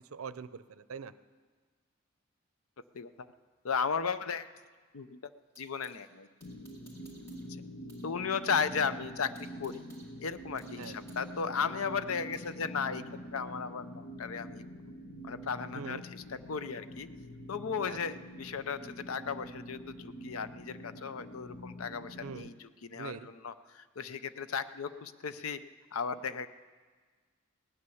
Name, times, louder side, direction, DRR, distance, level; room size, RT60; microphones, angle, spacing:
voice 1, 0.1-1.1 10.8-11.0 15.7-16.0 17.8-18.0 22.2-22.5 23.0-23.3, right 5 dB, 80° right, 15 dB, 0.5 m, -42 dB
sound 1, 2.8-6.0 6.4-8.1 8.4-8.5 8.9-12.6, right 1 dB, 15° left, 2.3 m, -62 dB
voice 2, 2.9-3.3 3.6-4.5 4.9-5.3 5.6-6.3 8.0-9.8 10.2-14.6 15.2-17.1 17.5-25.6 25.9-26.5, left 6 dB, 85° left, 13 dB, 0.6 m, -35 dB
sound 2, 6.4-22.5, equal, 50° left, 0.8 m, -46 dB
17.5 x 9.7 x 7.0 m, 1.5 s
head